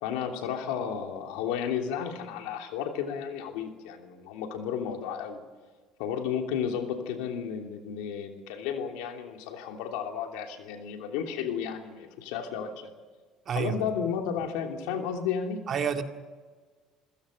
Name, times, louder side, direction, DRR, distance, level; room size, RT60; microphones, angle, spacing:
voice 1, 0.0-5.4 6.0-12.9 13.5-15.6, left 7 dB, 85° left, 4 dB, 3.0 m, -33 dB
voice 2, 13.5-13.8 15.7-16.0, right 7 dB, 45° right, 6 dB, 2.0 m, -28 dB
27.5 x 16.5 x 6.6 m, 1.4 s
supercardioid pair, 100°, 0 cm